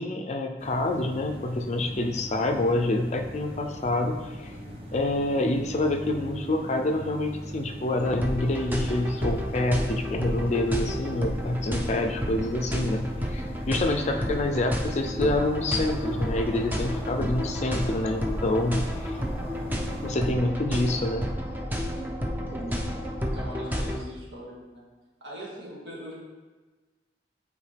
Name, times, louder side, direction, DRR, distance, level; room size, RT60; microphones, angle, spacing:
voice 1, 0.0-4.5 4.9-19.2 20.0-21.3, left 2 dB, 40° left, 4 dB, 0.4 m, -27 dB
sound 1, 0.6-20.3, equal, 35° right, 1.0 m, -41 dB
sound 2, 8.0-24.0, equal, 10° right, 0.6 m, -31 dB
voice 2, 22.5-22.8 23.3-24.8 25.2-26.2, equal, 80° right, -4 dB, 2.0 m, -40 dB
8.4 x 4.3 x 3.3 m, 1.3 s
head